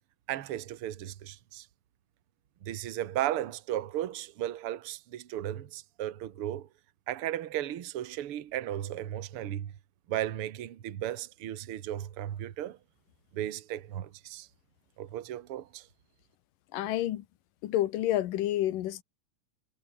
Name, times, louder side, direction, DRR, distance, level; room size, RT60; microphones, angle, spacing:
voice 1, 0.3-1.7 2.6-6.7 7.1-9.7 10.1-12.8 13.3-14.5 15.0-15.9, right 12 dB, 50° right, 1.9 m, -35 dB
voice 2, 16.7-17.2 17.6-19.0, left 13 dB, 80° left, 2.8 m, -29 dB
omnidirectional pair, 3.9 m